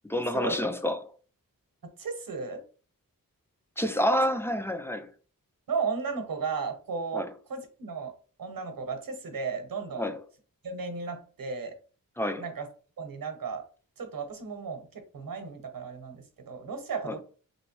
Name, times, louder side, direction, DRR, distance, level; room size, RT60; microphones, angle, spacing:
voice 1, 0.1-1.1 3.8-5.1 7.1-7.3 10.0-10.2 12.2-12.4 17.1-17.2, equal, 5° left, 0.3 m, -28 dB
voice 2, 2.0-2.6 5.7-8.1 8.4-10.1 10.6-11.7 12.4-12.7 13.0-13.6 14.0-17.2, right 5 dB, 75° right, 0.9 m, -34 dB
3.1 x 3.0 x 3.0 m
wide cardioid pair, 90°, 35 cm